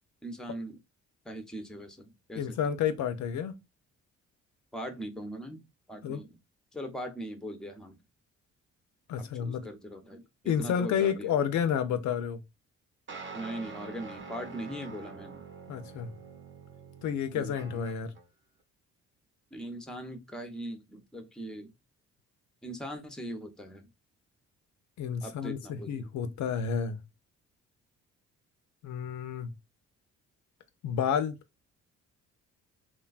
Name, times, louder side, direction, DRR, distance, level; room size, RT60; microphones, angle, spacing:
voice 1, 0.2-0.8 1.2-2.6 4.7-5.6 5.9-6.4 6.7-8.0 9.2-11.3 13.3-15.4 17.3-17.9 19.5-21.7 22.6-23.8 25.2-26.1, equal, ahead, 0.6 m, -40 dB
voice 2, 2.3-3.6 6.0-6.2 9.1-9.6 10.4-12.4 15.7-16.1 17.0-18.1 25.0-27.0 28.8-29.5 30.8-31.4, left 8 dB, 70° left, 0.5 m, -30 dB
sound 1, 13.1-18.2, right 5 dB, 40° right, 0.8 m, -46 dB
3.1 x 2.2 x 2.3 m
cardioid pair, 90°, 30 cm